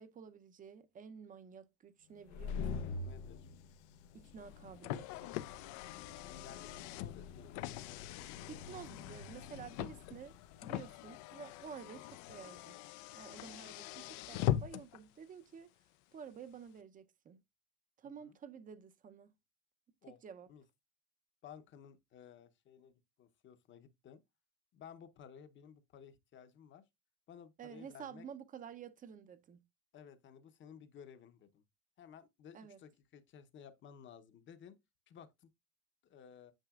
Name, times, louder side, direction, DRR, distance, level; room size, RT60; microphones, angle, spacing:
voice 1, 0.0-2.9 4.1-5.1 8.5-10.4 10.6-12.8 13.1-15.7 16.1-17.4 18.0-19.3 20.1-20.5 27.6-29.6 32.5-32.8, right 7 dB, 25° right, 0.6 m, -51 dB
sound 1, 2.1-12.6, left 5 dB, 75° left, 0.8 m, -47 dB
voice 2, 3.0-3.5 6.4-7.9 18.0-18.4 20.0-20.2 20.5-20.6 21.4-24.2 24.7-26.8 27.3-28.3 29.9-31.6 32.0-34.8 35.1-35.5 36.0-36.5, left 8 dB, 35° left, 0.9 m, -56 dB
Car, 4.4-15.0, left 13 dB, 55° left, 0.5 m, -42 dB
9.0 x 5.9 x 2.4 m
supercardioid pair, 135°, 35 cm